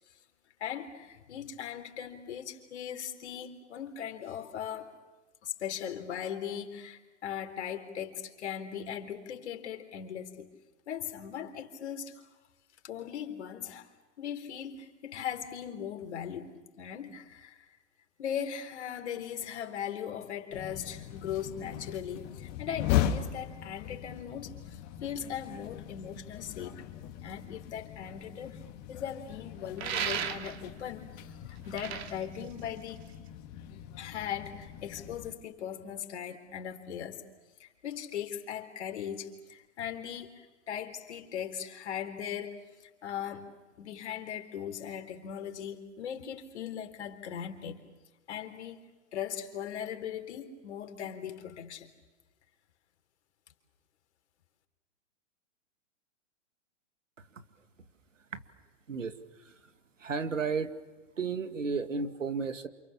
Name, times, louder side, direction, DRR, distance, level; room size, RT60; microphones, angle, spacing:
voice 1, 0.6-4.9 5.4-10.5 10.9-12.2 12.8-13.9 14.2-17.7 18.2-26.8 27.2-28.6 28.9-33.0 34.0-37.2 37.6-43.5 43.8-47.8 48.3-48.8 49.1-51.9, left 9 dB, 60° left, 5 dB, 3.9 m, -39 dB
sound 1, 20.5-35.3, left 11 dB, 40° left, 2.6 m, -38 dB
sound 2, 29.8-30.8 31.6-33.3, right 9 dB, 55° right, 2.5 m, -35 dB
voice 2, 58.9-59.6 60.0-60.8 61.2-62.7, right 5 dB, 80° right, 9 dB, 2.3 m, -33 dB
29.5 x 28.0 x 7.3 m, 1.2 s
hypercardioid pair, 115°, 37 cm